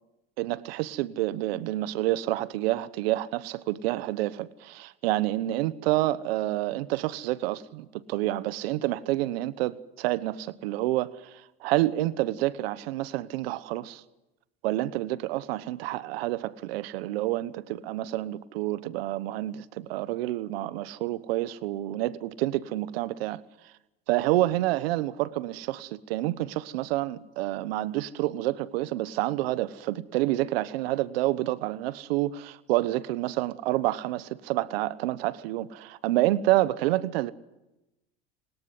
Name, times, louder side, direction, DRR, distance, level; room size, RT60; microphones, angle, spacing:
voice 1, 0.4-11.3 11.6-14.0 14.6-23.4 24.1-37.3, right 16 dB, 80° right, 1.1 m, -28 dB
30.0 x 18.0 x 9.6 m
supercardioid pair, 105°, 30 cm